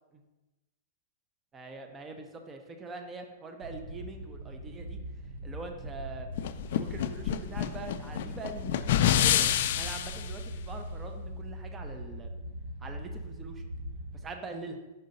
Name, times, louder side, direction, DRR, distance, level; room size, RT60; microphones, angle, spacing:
voice 1, 1.5-5.0 5.4-6.3 6.6-9.5 9.8-12.3 12.8-13.6 14.1-14.8, right 3 dB, 15° right, 5 dB, 0.5 m, -43 dB
sound 1, 3.6-14.2, equal, 75° right, 0.7 m, -41 dB
sound 2, 6.4-10.3, left 11 dB, 55° left, 0.3 m, -27 dB
5.5 x 3.9 x 5.2 m, 1.1 s
supercardioid pair, 165°, 0 cm